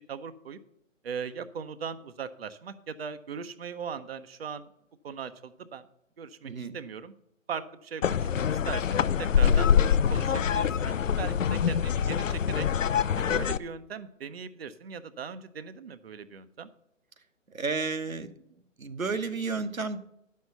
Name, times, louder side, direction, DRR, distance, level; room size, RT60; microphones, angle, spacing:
voice 1, 0.1-0.6 1.0-4.7 5.0-5.9 6.2-7.1 7.5-9.8 10.1-12.7 13.1-16.7, right 6 dB, 50° right, 13 dB, 0.8 m, -39 dB
voice 2, 6.4-6.7 17.5-18.3 18.8-20.0, right 4 dB, 85° right, 8 dB, 1.2 m, -32 dB
sound 1, 8.0-13.6, left 8 dB, 70° left, 0.6 m, -25 dB
10.0 x 6.5 x 6.8 m, 0.77 s
figure-of-eight pair, 145°, 40 cm